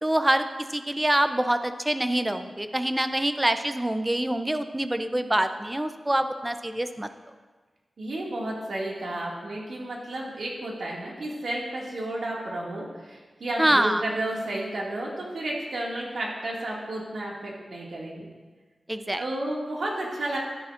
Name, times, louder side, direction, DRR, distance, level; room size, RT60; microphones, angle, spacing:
voice 1, 0.0-7.1 13.6-14.0 18.9-19.2, right 1 dB, 10° right, 9 dB, 0.5 m, -25 dB
voice 2, 8.0-18.3 19.2-20.4, right 1 dB, 75° right, -3 dB, 2.0 m, -32 dB
12.0 x 10.5 x 2.5 m, 1.4 s
wide cardioid pair, 120°, 0 cm